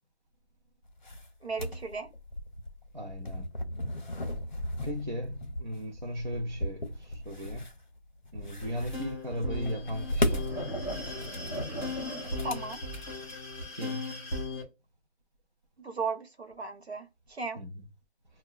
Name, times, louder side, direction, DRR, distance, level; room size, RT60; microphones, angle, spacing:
sound 1, 0.9-13.7, left 1 dB, 45° left, 0.7 m, -36 dB
voice 1, 1.4-2.1 12.4-12.8 15.8-17.6, right 4 dB, 70° right, 1.1 m, -36 dB
voice 2, 2.9-3.5 4.8-7.7 8.3-10.4 13.7-14.3 17.6-17.9, equal, 45° right, 0.5 m, -36 dB
sound 2, 8.6-14.6, left 1 dB, 10° left, 1.4 m, -37 dB
4.9 x 2.1 x 2.3 m
figure-of-eight pair, 175°, 33 cm